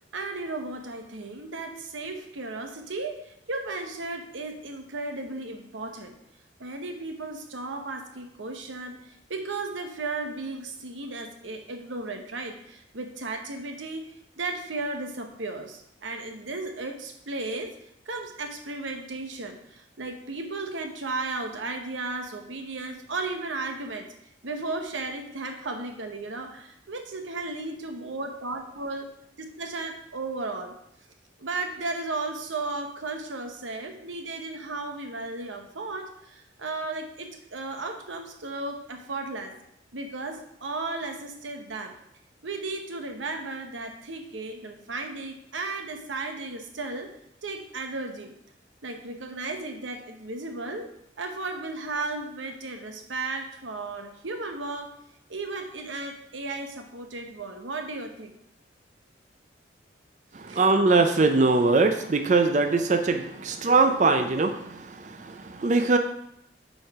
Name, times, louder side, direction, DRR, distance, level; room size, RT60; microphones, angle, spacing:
voice 1, 0.1-6.1 6.6-17.8 18.1-24.1 24.4-29.0 29.6-30.8 31.4-39.6 39.9-42.0 42.4-47.1 47.4-48.3 48.8-50.9 51.2-54.9 55.3-58.3 60.5-60.6, right 3 dB, 85° right, 5 dB, 1.0 m, -35 dB
voice 2, 60.3-66.0, right 3 dB, 40° right, 6 dB, 0.5 m, -22 dB
7.8 x 4.5 x 4.7 m, 0.77 s
head